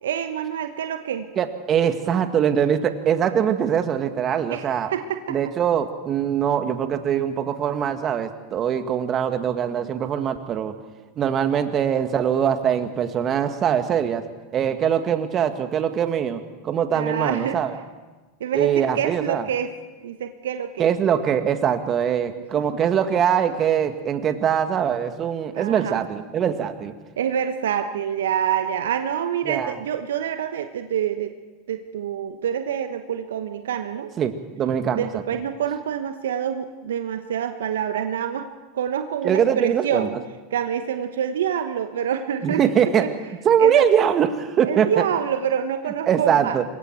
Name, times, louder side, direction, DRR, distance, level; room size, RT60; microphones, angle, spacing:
voice 1, 0.0-1.3 4.5-5.4 16.9-17.6 18.4-19.7 20.0-20.8 25.5-26.0 27.2-31.3 31.7-34.1 34.9-38.5 38.7-40.1 40.5-42.6 43.0-43.1 43.6-43.9 44.6-46.6, right 9 dB, 75° right, 8 dB, 1.1 m, -26 dB
voice 2, 1.4-4.9 5.3-10.7 11.2-14.2 14.5-17.7 18.5-19.5 20.8-26.9 29.4-29.8 34.2-35.2 39.2-40.1 42.4-43.1 43.4-45.0 46.1-46.6, right 8 dB, 35° right, 8 dB, 1.8 m, -22 dB
26.5 x 22.5 x 4.6 m, 1.2 s
hypercardioid pair, 85°, 0 cm